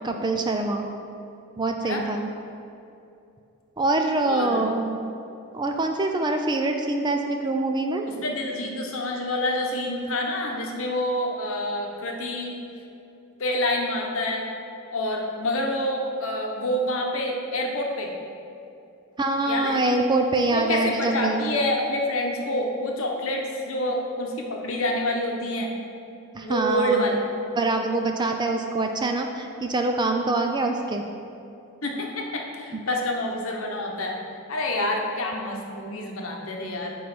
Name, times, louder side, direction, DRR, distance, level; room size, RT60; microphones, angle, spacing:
voice 1, 0.0-0.9 1.6-2.3 3.8-5.0 5.5-8.1 19.2-21.4 26.3-27.0 27.6-31.0, right 2 dB, 20° right, 4 dB, 0.3 m, -24 dB
voice 2, 4.2-4.6 8.1-12.6 13.4-14.4 14.9-18.1 19.5-19.8 20.5-25.7 26.4-27.2 31.8-34.2 34.5-37.0, left 1 dB, 65° left, 1 dB, 0.9 m, -27 dB
9.1 x 3.1 x 6.0 m, 2.7 s
head